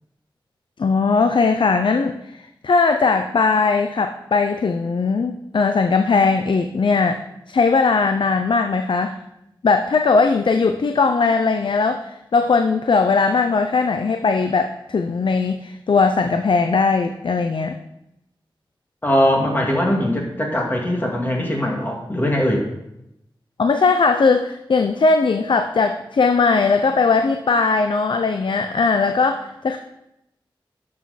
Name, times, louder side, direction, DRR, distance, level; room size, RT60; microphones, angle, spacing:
voice 1, 0.8-2.2 2.6-9.2 9.6-17.8 23.6-29.8, left 4 dB, 65° left, 7 dB, 0.5 m, -19 dB
voice 2, 19.0-22.7, equal, 20° left, -1 dB, 2.2 m, -21 dB
12.0 x 6.4 x 4.1 m, 0.85 s
wide cardioid pair, 90°, 9 cm